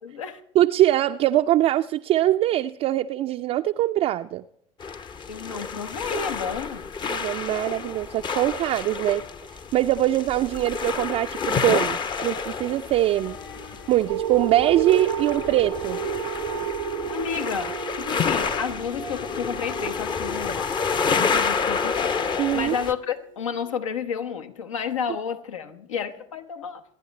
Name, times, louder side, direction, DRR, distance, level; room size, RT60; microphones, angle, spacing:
voice 1, 0.0-0.4 5.3-6.9 17.1-20.8 21.1-26.8, left 6 dB, 80° left, 1.1 m, -31 dB
voice 2, 0.6-4.4 7.1-9.2 9.7-13.4 13.9-16.0 22.4-22.7, right 14 dB, 40° right, 0.4 m, -22 dB
sound 1, 4.8-22.9, left 5 dB, 30° left, 0.7 m, -29 dB
sound 2, 13.1-20.7, left 4 dB, 45° left, 1.6 m, -46 dB
sound 3, 14.1-23.0 23.6-23.7, right 10 dB, 85° right, 0.7 m, -33 dB
26.0 x 9.7 x 3.2 m
hypercardioid pair, 80°, 16 cm